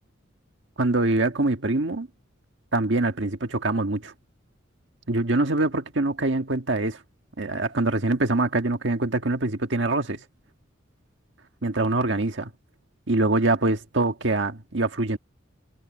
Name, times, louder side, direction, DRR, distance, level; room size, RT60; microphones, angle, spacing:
voice 1, 0.8-2.1 2.7-4.1 5.1-7.0 7.4-10.2 11.6-12.5 13.1-15.2, right 2 dB, 65° right, 1.6 m, -24 dB
head